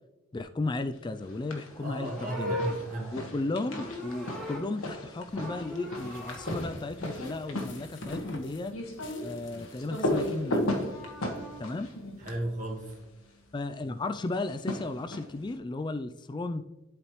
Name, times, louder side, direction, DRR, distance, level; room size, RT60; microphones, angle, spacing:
voice 1, 0.3-2.6 3.1-8.8 9.2-10.9 11.6-11.9 13.5-16.6, left 2 dB, 20° left, 10 dB, 0.3 m, -34 dB
sound 1, 1.2-1.7 2.0-13.0 14.3-15.5, left 1 dB, 90° left, 1.4 m, -36 dB
Livestock farm animals working animals, 1.6-5.1 5.3-6.6 10.4-11.6, left 1 dB, ahead, 1.5 m, -39 dB
voice 2, 1.8-3.1 12.2-12.9, right 1 dB, 40° right, -1 dB, 1.8 m, -34 dB
sound 2, 5.3-12.3, left 2 dB, 60° left, 1.1 m, -45 dB
11.5 x 5.1 x 3.1 m, 1.1 s
head